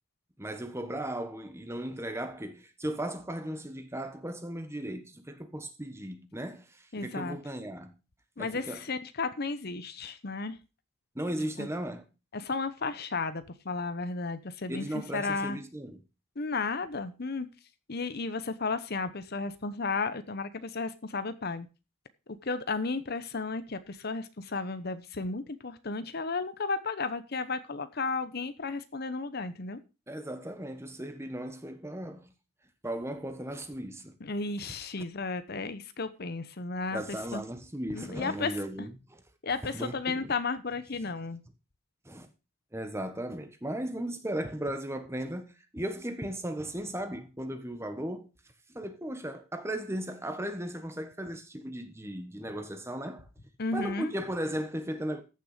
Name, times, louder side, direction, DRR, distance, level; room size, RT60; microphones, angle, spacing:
voice 1, 0.4-8.0 8.4-8.8 11.1-12.0 14.7-16.0 30.1-32.3 32.8-34.2 36.9-39.2 39.7-40.3 41.0-41.1 42.0-42.3 42.7-48.3 48.7-53.2 53.7-55.2, right 1 dB, 10° right, 1.3 m, -36 dB
voice 2, 6.9-7.4 8.4-10.6 11.6-11.7 12.3-14.9 15.1-15.6 16.4-17.5 17.9-21.7 22.3-29.8 34.2-37.4 37.9-38.6 39.4-41.4 53.6-54.1, left 4 dB, 50° left, 0.9 m, -33 dB
14.5 x 6.8 x 5.0 m
head